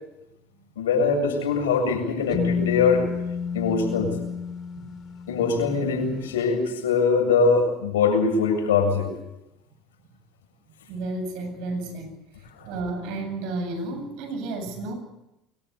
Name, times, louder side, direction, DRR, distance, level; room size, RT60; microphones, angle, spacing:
voice 1, 0.8-3.1 3.5-4.1 5.3-9.1, left 4 dB, 85° left, 3 dB, 7.5 m, -22 dB
sound 1, 2.3-6.2, left 6 dB, 45° left, 3.6 m, -30 dB
voice 2, 10.9-12.1 12.6-14.9, right 2 dB, 65° right, 7 dB, 8.0 m, -32 dB
24.0 x 22.0 x 8.3 m, 0.90 s
hypercardioid pair, 75°, 0 cm